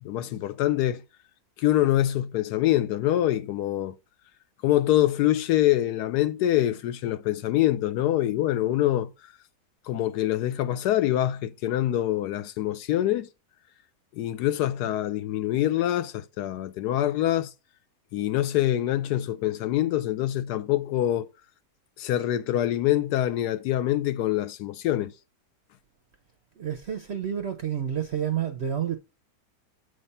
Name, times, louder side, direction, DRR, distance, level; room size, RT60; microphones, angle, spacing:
voice 1, 0.0-1.0 1.6-4.0 4.6-9.1 9.9-13.3 14.1-17.5 18.1-21.3 22.0-25.1, left 13 dB, 75° left, 1.1 m, -25 dB
voice 2, 26.6-29.0, right 9 dB, 65° right, 0.6 m, -29 dB
7.9 x 3.3 x 5.4 m
omnidirectional pair, 1.8 m